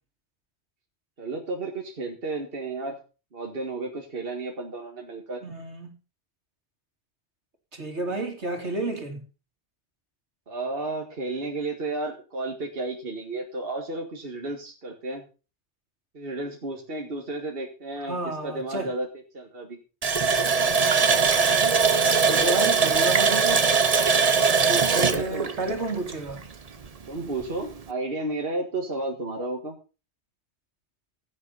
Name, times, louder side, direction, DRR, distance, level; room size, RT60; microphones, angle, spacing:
voice 1, 1.2-3.0 3.3-5.4 10.5-15.2 16.1-19.1 19.3-19.8 24.9-25.5 27.1-29.8, right 2 dB, 55° right, 2.0 m, -32 dB
voice 2, 5.4-5.9 7.7-9.2 18.1-18.9 22.2-23.7 24.7-26.4, right 2 dB, 80° right, 3.2 m, -31 dB
Water tap faucet, 20.0-26.5 26.8-26.9 27.4-27.6, right 5 dB, 35° right, 0.9 m, -21 dB
15.5 x 9.6 x 4.1 m
omnidirectional pair, 1.1 m